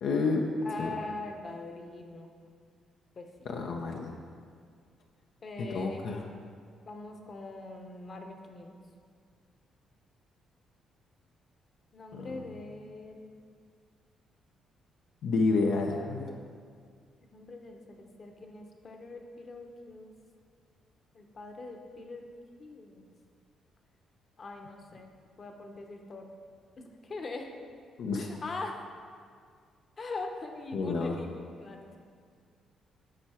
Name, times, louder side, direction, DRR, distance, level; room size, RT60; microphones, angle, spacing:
voice 1, 0.0-0.4 0.8-0.9 3.5-4.2 5.6-6.2 12.1-12.4 15.2-16.3 28.0-28.3 30.7-31.2, left 3 dB, 75° left, 1 dB, 0.6 m, -29 dB
voice 2, 0.6-2.3 3.2-3.3 5.4-6.2 6.9-8.7 11.9-13.3 17.3-20.1 21.1-22.3 22.6-23.0 24.4-26.3 26.8-27.5 28.2-28.8 30.0-32.0, left 3 dB, 40° left, 4 dB, 1.0 m, -42 dB
12.5 x 4.6 x 4.3 m, 2.1 s
cardioid pair, 90°, 0 cm